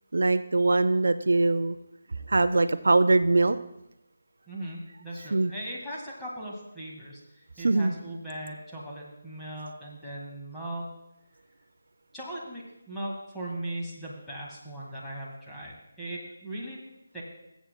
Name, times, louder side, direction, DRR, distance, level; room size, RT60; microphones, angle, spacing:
voice 1, 0.1-1.8 2.3-3.6 5.3-5.5 7.6-7.9, right 2 dB, 70° right, 12 dB, 0.4 m, -22 dB
voice 2, 4.5-7.2 7.6-10.9 12.1-16.8 17.1-17.2, right 1 dB, 5° left, -7 dB, 1.8 m, -38 dB
19.0 x 8.0 x 2.2 m, 0.87 s
figure-of-eight pair, 155°, 0 cm